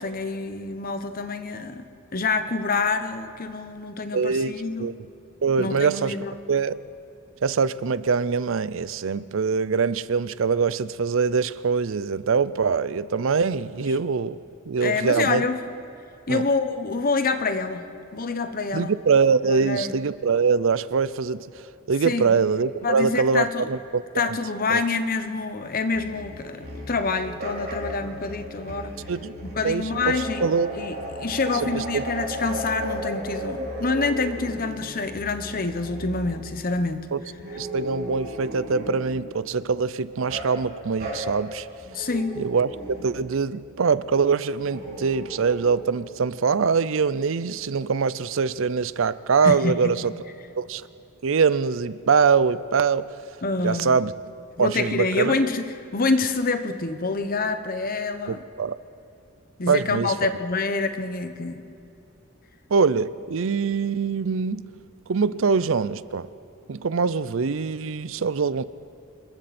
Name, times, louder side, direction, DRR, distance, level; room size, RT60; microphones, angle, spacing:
voice 1, 0.0-1.8 2.1-4.9 5.6-6.3 14.8-15.6 16.3-17.9 18.1-18.9 19.4-19.9 22.0-22.3 22.8-23.7 24.2-29.0 29.4-37.1 41.9-42.4 49.4-49.9 53.4-53.9 54.6-55.7 55.9-58.4 59.6-61.6, left 3 dB, 45° left, 9 dB, 1.1 m, -27 dB
voice 2, 4.1-4.9 5.4-6.2 6.5-6.8 7.4-14.4 14.7-15.5 16.3-16.4 18.7-24.4 24.7-24.8 29.1-29.3 29.6-30.7 31.5-32.0 37.1-37.2 37.6-41.7 42.4-42.7 43.0-50.1 50.6-50.9 51.2-53.1 53.6-54.1 54.6-55.4 58.3-58.8 59.7-60.3 62.7-64.7 65.1-66.3 66.7-68.6, right 5 dB, 65° right, 17 dB, 0.5 m, -23 dB
sound 1, 25.9-36.5 37.4-39.1 40.3-40.6 41.0-41.2 41.8-43.2 44.6-45.6, equal, 50° right, 5.0 m, -35 dB
27.5 x 22.5 x 4.3 m, 2.8 s
head